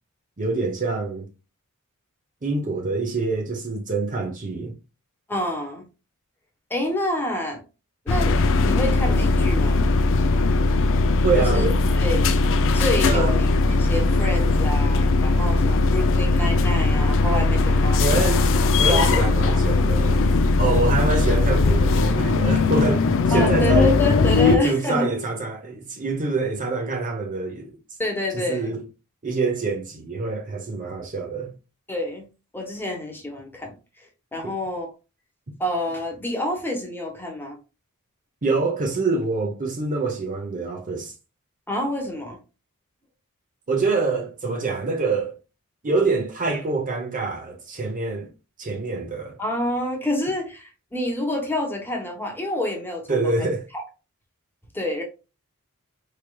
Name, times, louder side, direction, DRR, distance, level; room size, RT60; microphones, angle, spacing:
voice 1, 0.4-1.3 2.4-4.7 11.2-11.8 13.1-13.3 18.0-20.3 20.6-23.9 24.4-27.8 28.3-28.8 29.2-31.5 34.4-34.5 38.4-41.1 43.7-45.3 45.8-48.3 48.6-49.4 53.1-53.6, right 3 dB, 35° right, 0.7 m, -25 dB
voice 2, 5.3-5.8 6.7-7.6 8.0-9.9 11.4-11.6 12.0-12.3 12.7-18.4 18.8-19.1 19.5-19.6 23.3-25.1 28.0-28.7 31.9-32.2 32.5-33.7 34.3-34.9 35.6-37.6 41.7-42.4 49.4-53.8 54.7-55.0, left 1 dB, 10° left, 1.0 m, -28 dB
sound 1, 8.1-24.6, left 3 dB, 60° left, 0.4 m, -19 dB
4.5 x 3.2 x 2.3 m
head